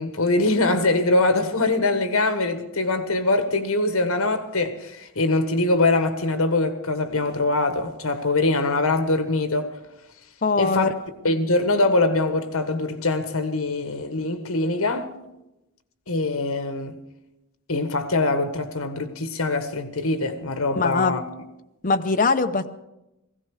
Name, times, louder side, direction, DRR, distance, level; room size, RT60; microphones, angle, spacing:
voice 1, 0.0-9.7 10.6-10.9 11.2-15.1 16.1-17.0 17.7-21.2, left 2 dB, 70° left, 1.4 m, -23 dB
voice 2, 10.4-10.9 20.7-21.2 21.8-22.7, left 4 dB, 40° left, 0.7 m, -21 dB
17.0 x 16.0 x 4.9 m
head